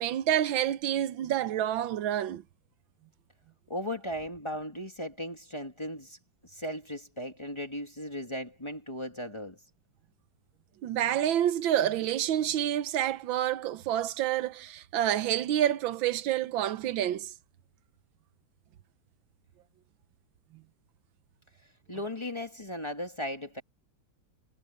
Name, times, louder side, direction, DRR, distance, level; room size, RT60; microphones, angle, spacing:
voice 1, 0.0-2.4 10.8-17.3, right 11 dB, 85° right, 1.6 m, -28 dB
voice 2, 3.7-6.2 6.5-9.6 21.9-23.6, left 1 dB, 15° left, 1.5 m, -37 dB
omnidirectional pair, 2.1 m